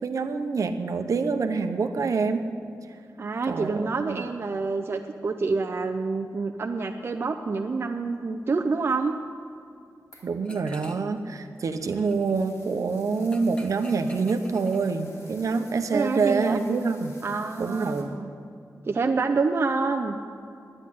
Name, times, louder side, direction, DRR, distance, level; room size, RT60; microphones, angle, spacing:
voice 1, 0.0-2.5 3.5-4.2 10.2-17.2 17.6-18.2, right 4 dB, 65° right, 7 dB, 0.9 m, -26 dB
voice 2, 3.2-9.2 15.9-16.6 17.2-18.3 18.9-20.2, right 4 dB, 40° right, 4 dB, 0.5 m, -27 dB
sound 1, 10.1-10.4 11.3-18.0, left 2 dB, 55° left, 2.5 m, -53 dB
sound 2, 10.4-11.2 11.5-15.3, equal, 20° left, 1.0 m, -47 dB
10.5 x 9.9 x 10.0 m, 2.4 s
wide cardioid pair, 180°, 6 cm